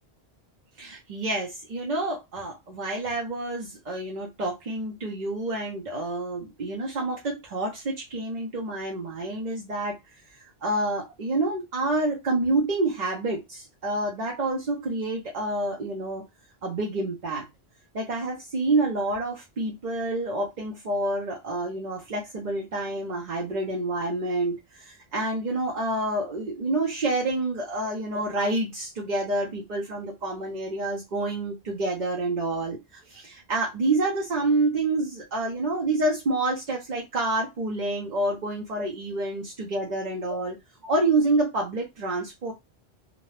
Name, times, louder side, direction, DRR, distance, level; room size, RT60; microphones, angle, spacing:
voice 1, 0.8-16.2 16.6-17.5 17.9-40.5 40.8-42.5, right 2 dB, 50° right, -1 dB, 0.7 m, -28 dB
2.6 x 2.2 x 3.2 m, 0.21 s
omnidirectional pair, 1.1 m